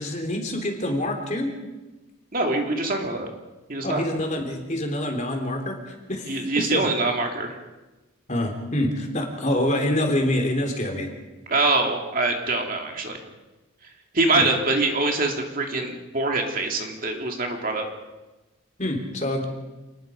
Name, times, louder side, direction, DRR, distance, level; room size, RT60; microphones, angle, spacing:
voice 1, 0.0-1.5 3.8-6.9 8.3-11.1 14.3-14.5 18.8-19.4, left 1 dB, 35° left, 2 dB, 3.7 m, -26 dB
voice 2, 2.3-3.3 3.7-4.0 6.3-7.6 11.5-13.2 14.1-17.8, right 2 dB, 40° right, 2 dB, 2.7 m, -24 dB
28.0 x 20.5 x 5.3 m, 1.1 s
head